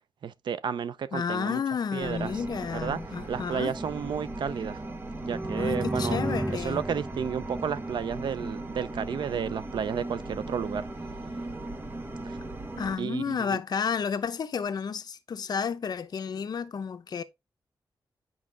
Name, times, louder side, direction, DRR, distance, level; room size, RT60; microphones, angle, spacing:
voice 1, 0.2-1.6 1.9-2.3 2.7-3.0 3.3-4.8 5.2-6.2 6.5-10.9 12.2-12.4 13.0-13.6, right 7 dB, 75° right, 0.6 m, -32 dB
voice 2, 1.1-3.7 5.6-6.8 12.8-17.2, left 6 dB, 55° left, 0.8 m, -31 dB
sound 1, 2.0-13.0, right 2 dB, 25° right, 1.2 m, -38 dB
sound 2, 5.2-8.9, right 1 dB, 10° right, 0.6 m, -34 dB
8.7 x 5.4 x 3.4 m
wide cardioid pair, 155°, 8 cm